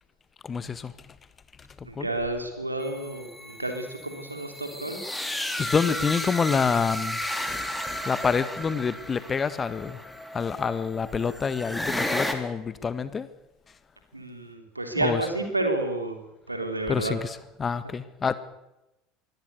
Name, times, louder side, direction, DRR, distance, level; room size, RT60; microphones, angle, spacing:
voice 1, 0.4-0.9 1.8-2.1 5.6-7.2 8.1-10.0 10.3-13.3 15.0-15.2 16.9-18.4, left 6 dB, 25° left, 13 dB, 1.7 m, -27 dB
voice 2, 1.8-5.0 14.1-16.2 16.5-17.2, right 2 dB, 90° right, 5 dB, 3.2 m, -30 dB
sound 1, 2.8-12.3, left 1 dB, 5° left, 3.4 m, -33 dB
23.0 x 17.0 x 8.2 m, 0.93 s
figure-of-eight pair, 70°, 0 cm